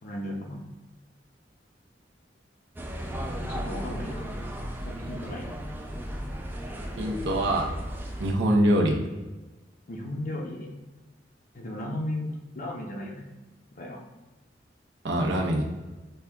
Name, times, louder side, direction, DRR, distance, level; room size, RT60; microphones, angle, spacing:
voice 1, 0.0-0.7 3.4-4.2 4.8-5.5 9.9-10.7 11.5-13.3 13.7-14.0, left 1 dB, 50° left, 0 dB, 0.6 m, -35 dB
sound 1, 2.8-8.3, equal, 10° right, 0.4 m, -35 dB
voice 2, 7.0-7.7 8.2-9.0 15.0-15.6, right 1 dB, 70° right, -1 dB, 0.7 m, -23 dB
5.3 x 2.3 x 3.5 m, 1.2 s
head